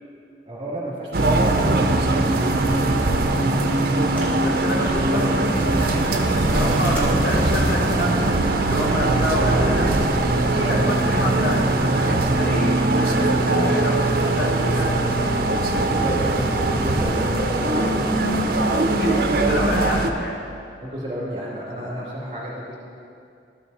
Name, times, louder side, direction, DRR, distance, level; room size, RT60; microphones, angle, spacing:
voice 1, 0.4-2.5 3.1-3.3 5.1-5.3 10.6-10.8 15.7-18.4 20.8-22.8, right 1 dB, 30° right, -6 dB, 2.5 m, -31 dB
sound 1, 1.1-20.1, right 2 dB, 55° right, 0.6 m, -21 dB
sound 2, 4.1-4.4 4.8-5.5 5.9-7.4 8.3-8.4, equal, 10° left, 1.7 m, -33 dB
voice 2, 4.4-10.0 10.4-15.1 18.7-20.4, left 1 dB, 75° left, -3 dB, 1.5 m, -28 dB
12.5 x 6.1 x 4.1 m, 2.5 s
head